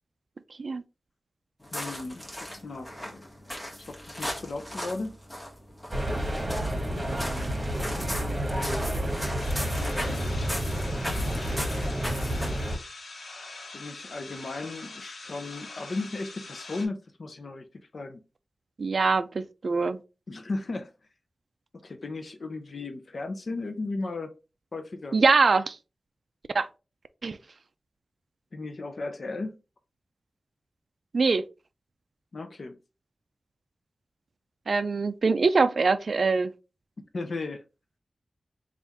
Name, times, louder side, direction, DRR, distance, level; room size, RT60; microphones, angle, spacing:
sound 1, 1.6-12.8, equal, 10° left, 1.5 m, -38 dB
voice 1, 1.7-3.3 3.9-5.1 6.9-7.6 8.1-8.2 8.5-8.9 9.8-10.5 11.1-11.3 13.7-18.2 20.3-20.9 21.8-24.3 24.7-25.2 28.5-29.6 32.3-32.8 37.1-37.6, left 3 dB, 60° left, 0.5 m, -36 dB
sound 2, 5.9-12.8, equal, 35° right, 1.1 m, -30 dB
sound 3, 9.4-16.9, left 3 dB, 75° left, 1.0 m, -43 dB
voice 2, 18.8-20.0 25.1-25.8 26.5-26.7 27.2-27.4 31.1-31.4 34.7-36.5, right 4 dB, 60° right, 0.3 m, -23 dB
3.5 x 2.4 x 4.0 m
wide cardioid pair, 85°, 0 cm